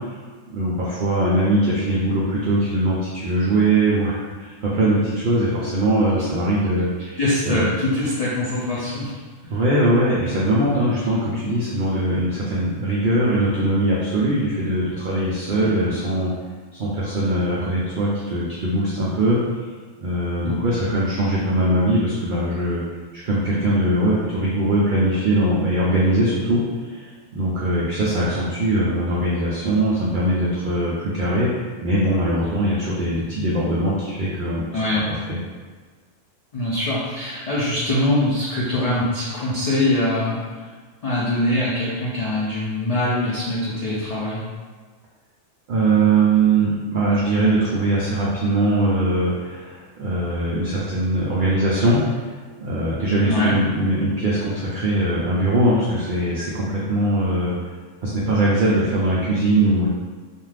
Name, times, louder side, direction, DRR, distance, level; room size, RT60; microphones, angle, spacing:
voice 1, 0.5-7.2 7.5-7.7 9.5-16.3 16.8-19.7 20.0-22.8 23.3-26.6 26.9-27.0 27.3-31.5 31.8-34.6 35.1-35.4 45.7-57.6 58.0-59.9, right 1 dB, 60° right, -6 dB, 0.5 m, -21 dB
voice 2, 7.2-9.1 20.4-20.5 34.7-35.0 36.5-40.4 41.0-44.4 53.2-53.6, left 1 dB, 65° left, -8 dB, 0.3 m, -23 dB
2.4 x 2.4 x 3.2 m, 1.4 s
omnidirectional pair, 1.3 m